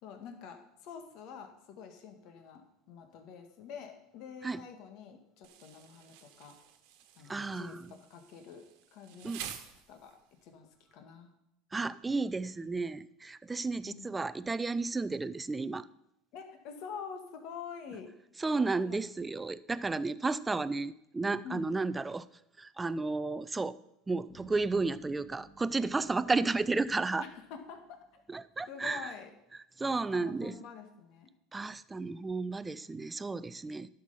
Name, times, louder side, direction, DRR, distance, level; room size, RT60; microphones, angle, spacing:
voice 1, 0.0-6.6 7.2-8.6 8.9-9.5 9.9-10.7 10.9-11.3 13.9-14.1 16.3-18.1 18.8-19.0 21.4-21.7 26.3-26.6 27.2-28.2 28.7-29.3 29.8-31.3, left 6 dB, 60° left, 6 dB, 1.7 m, -47 dB
Insect, 5.4-10.4, right 10 dB, 70° right, 1.2 m, -49 dB
voice 2, 7.3-7.9 9.2-9.5 11.7-15.9 18.4-22.3 22.6-23.8 24.1-27.2 28.3-29.1 29.8-30.6 31.5-33.9, right 3 dB, 15° right, 15 dB, 0.4 m, -33 dB
sound 1, 24.3-28.3, right 3 dB, 20° left, 2.8 m, -59 dB
11.5 x 6.5 x 5.5 m, 0.79 s
supercardioid pair, 135°, 0 cm